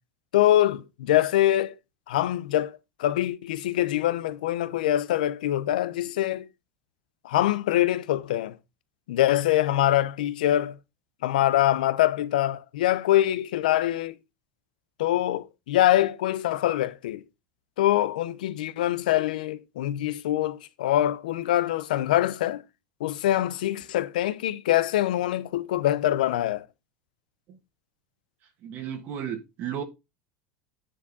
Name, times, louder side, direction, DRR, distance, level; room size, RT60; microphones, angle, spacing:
voice 1, 0.3-1.7 2.1-2.7 3.0-6.4 7.2-8.6 9.1-10.8 11.2-14.1 15.0-17.2 17.8-22.6 23.0-26.6, left 13 dB, 90° left, 0.8 m, -24 dB
voice 2, 28.6-29.8, right 9 dB, 45° right, 1.5 m, -34 dB
10.0 x 4.5 x 4.1 m
supercardioid pair, 130°, 4 cm